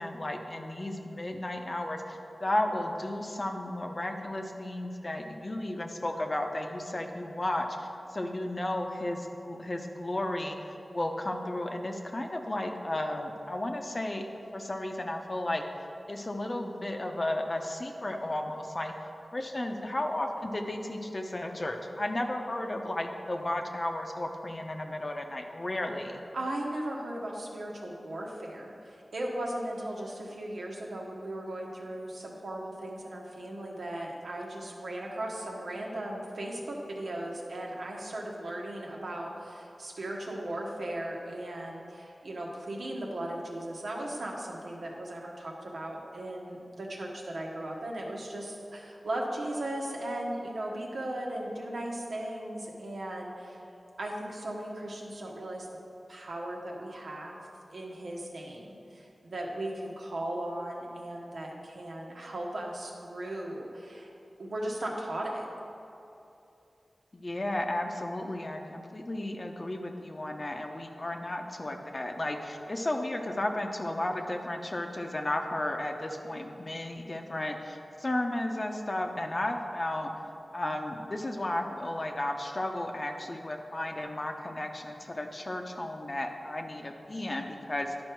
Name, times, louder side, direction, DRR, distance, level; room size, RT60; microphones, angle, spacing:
voice 1, 0.0-10.6 10.9-14.3 14.5-15.6 16.1-18.9 19.3-26.1 67.1-80.1 80.5-87.9, left 1 dB, 40° left, 4 dB, 0.8 m, -33 dB
voice 2, 26.3-53.6 54.0-55.7 56.1-57.4 57.7-64.1 64.4-65.5, right 1 dB, 85° right, -2 dB, 1.3 m, -37 dB
10.5 x 5.3 x 4.6 m, 2.8 s
wide cardioid pair, 65°, 0 cm